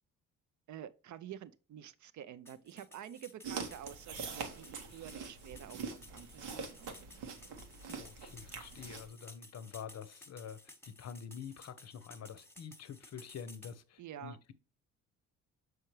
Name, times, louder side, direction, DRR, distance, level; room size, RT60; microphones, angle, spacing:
voice 1, 0.7-7.5 14.0-14.4, right 10 dB, 50° right, 0.6 m, -49 dB
sound 1, 2.5-13.8, left 1 dB, 5° left, 1.2 m, -56 dB
sound 2, 3.4-9.1, right 5 dB, 75° right, 1.1 m, -44 dB
voice 2, 7.9-14.5, left 7 dB, 40° left, 0.7 m, -47 dB
6.4 x 4.8 x 3.1 m
hypercardioid pair, 50°, 40 cm